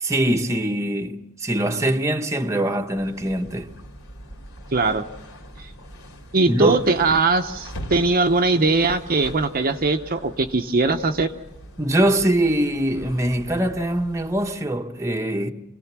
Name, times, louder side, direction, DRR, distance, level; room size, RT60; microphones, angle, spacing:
voice 1, 0.0-3.7 6.5-6.8 11.8-15.5, right 1 dB, 15° right, 1.1 m, -23 dB
sound 1, 2.9-14.6, equal, 70° left, 4.0 m, -41 dB
voice 2, 4.7-5.0 6.3-11.3, right 3 dB, 45° right, 0.9 m, -20 dB
28.0 x 17.5 x 6.1 m
head